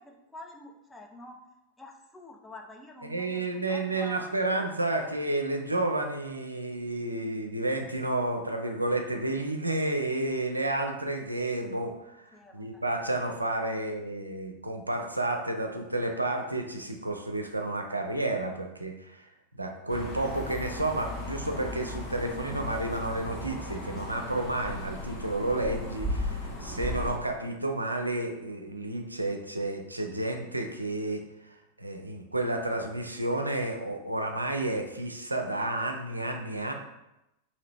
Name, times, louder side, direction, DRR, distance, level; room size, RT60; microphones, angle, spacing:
voice 1, 0.0-1.4 1.8-4.2 12.3-12.8 13.6-13.8, left 1 dB, 10° left, 2 dB, 0.4 m, -47 dB
voice 2, 3.0-12.3 12.5-19.3 19.5-31.2 31.8-36.7, right 2 dB, 85° right, 3 dB, 0.4 m, -31 dB
sound 1, 19.9-27.2, left 1 dB, 30° left, 1.0 m, -36 dB
2.8 x 2.6 x 3.3 m, 0.89 s
figure-of-eight pair, 90°, 0 cm